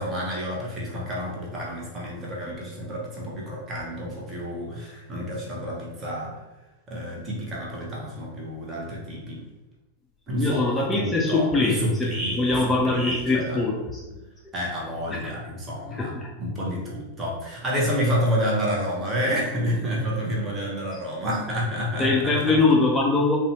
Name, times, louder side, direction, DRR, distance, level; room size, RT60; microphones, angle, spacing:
voice 1, 0.0-6.4 6.9-9.4 10.3-13.6 14.5-16.1 16.4-22.6, equal, 20° right, -3 dB, 0.8 m, -29 dB
voice 2, 10.4-14.0 15.1-15.2 16.0-16.3 22.0-23.4, left 3 dB, 15° left, -3 dB, 0.4 m, -22 dB
2.6 x 2.2 x 2.9 m, 1.1 s
figure-of-eight pair, 90°, 0 cm